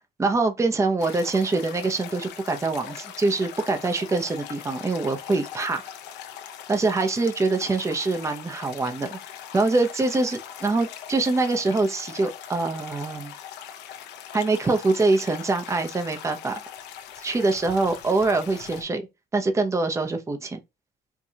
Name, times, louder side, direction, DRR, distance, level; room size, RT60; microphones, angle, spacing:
voice 1, 0.2-5.8 6.7-9.2 9.5-13.3 14.3-16.5 17.2-19.0 19.3-20.6, right 3 dB, 15° right, 0.7 m, -24 dB
sound 1, 1.0-18.8, left 9 dB, 85° left, 0.7 m, -41 dB
4.6 x 2.3 x 2.7 m
cardioid pair, 110°, 17 cm